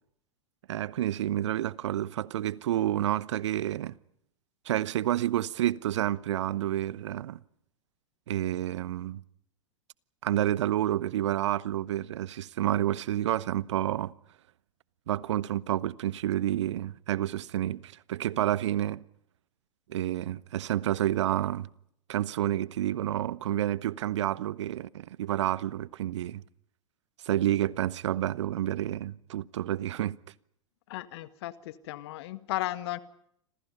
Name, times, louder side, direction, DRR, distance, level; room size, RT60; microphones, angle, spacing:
voice 1, 0.7-3.9 4.6-7.4 8.3-9.2 10.2-14.1 15.1-19.0 19.9-21.7 22.1-26.4 27.2-30.2, right 12 dB, 60° right, 0.9 m, -29 dB
voice 2, 30.9-33.0, left 16 dB, 55° left, 1.8 m, -35 dB
29.5 x 26.5 x 5.4 m
figure-of-eight pair, 95°, 17 cm